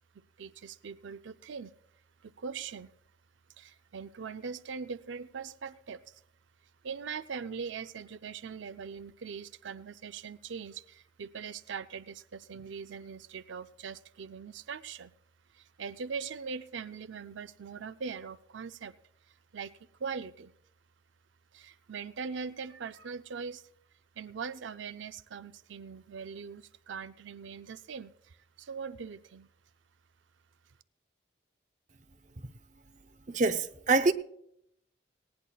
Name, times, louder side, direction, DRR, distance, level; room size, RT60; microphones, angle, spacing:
voice 1, 0.4-1.7 2.2-2.9 3.6-6.2 6.8-15.1 15.5-18.9 19.3-19.7 20.0-20.5 21.5-23.7 24.2-29.5, right 6 dB, 85° right, 0.5 m, -41 dB
voice 2, 33.3-34.1, right 3 dB, 40° right, 0.7 m, -25 dB
19.0 x 17.5 x 2.3 m
head